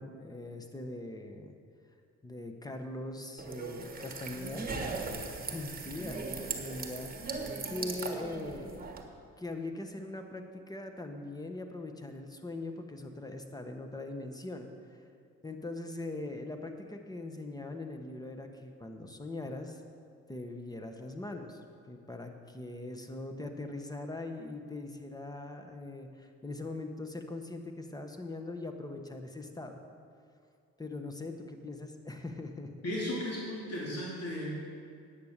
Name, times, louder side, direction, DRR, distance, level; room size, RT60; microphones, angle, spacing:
voice 1, 0.0-1.5 2.2-4.7 5.5-8.9 9.4-15.0 15.4-19.8 20.3-21.6 21.9-29.8 30.8-32.7, left 2 dB, 15° left, 5 dB, 1.2 m, -41 dB
sound 1, 3.4-9.0, right 4 dB, 30° right, 1.5 m, -39 dB
voice 2, 32.8-34.7, left 1 dB, 55° left, -5 dB, 2.8 m, -36 dB
10.5 x 8.8 x 6.7 m, 2.4 s
cardioid pair, 90°, 30 cm